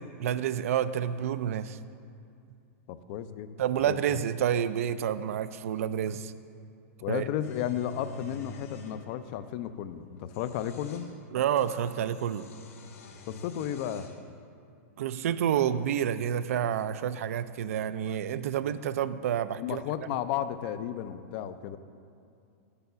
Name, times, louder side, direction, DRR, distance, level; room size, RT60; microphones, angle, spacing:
voice 1, 0.2-1.8 3.6-6.3 7.1-7.2 11.3-12.5 15.0-19.8, right 9 dB, 75° right, 14 dB, 0.4 m, -29 dB
voice 2, 2.9-3.5 3.8-4.2 7.0-11.1 13.3-14.1 19.6-21.8, left 10 dB, 45° left, 12 dB, 0.4 m, -33 dB
sound 1, 7.4-9.0 10.2-11.1 11.6-14.2, left 3 dB, 80° left, 1.1 m, -46 dB
6.8 x 5.5 x 6.8 m, 2.5 s
hypercardioid pair, 135°, 8 cm